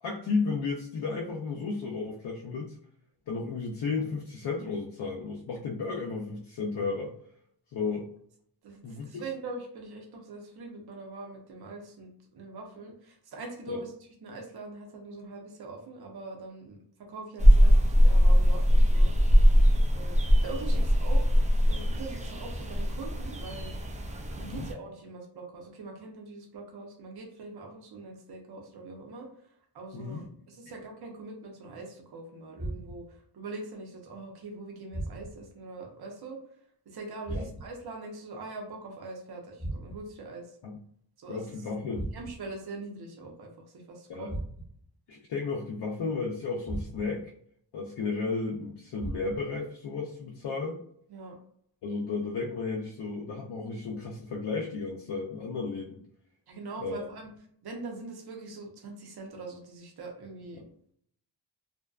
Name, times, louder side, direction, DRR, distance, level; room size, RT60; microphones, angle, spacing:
voice 1, 0.0-2.7 3.3-7.1 7.7-8.1 8.8-9.2 13.7-13.8 24.4-24.7 29.9-30.2 37.3-37.4 40.6-40.8 41.3-42.1 44.1-44.4 45.1-47.3 47.7-50.8 51.8-56.0 56.8-57.0 60.5-60.6, left 4 dB, 60° left, -1 dB, 0.6 m, -33 dB
voice 2, 8.6-19.2 19.9-21.3 21.7-23.8 24.3-29.5 29.7-36.4 36.9-40.6 41.2-41.6 42.1-44.3 51.1-51.3 56.5-57.3 57.6-60.6, right 3 dB, 55° right, 1 dB, 0.7 m, -43 dB
sound 1, 17.4-24.7, equal, 15° right, 0.3 m, -21 dB
sound 2, 32.6-33.2 34.9-35.5 37.2-37.9 39.6-40.2 41.9-42.6 44.3-44.9 46.6-47.3 49.0-49.6, right 1 dB, ahead, 0.8 m, -38 dB
2.6 x 2.2 x 2.3 m, 0.64 s
cardioid pair, 65°, 46 cm